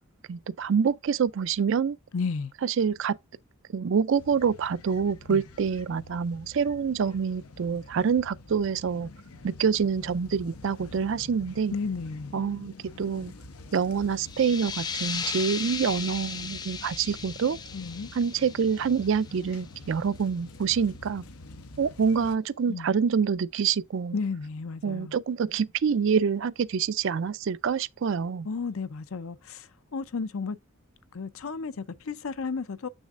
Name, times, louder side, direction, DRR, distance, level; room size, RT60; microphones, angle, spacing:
voice 1, 0.3-2.0 2.6-3.2 3.7-9.1 9.4-11.7 12.3-13.3 13.7-17.6 18.1-21.2 21.8-24.2 24.8-28.5, right 6 dB, 60° right, 0.4 m, -26 dB
voice 2, 2.1-2.5 5.3-5.4 11.7-12.3 17.7-18.1 22.7-22.9 24.1-25.2 28.5-29.6 29.9-30.6 31.1-32.9, left 4 dB, 70° left, 0.6 m, -33 dB
sound 1, 4.2-22.4, left 2 dB, 90° left, 0.9 m, -47 dB
sound 2, 14.2-19.6, left 6 dB, 20° left, 0.4 m, -36 dB
7.3 x 6.3 x 2.5 m
head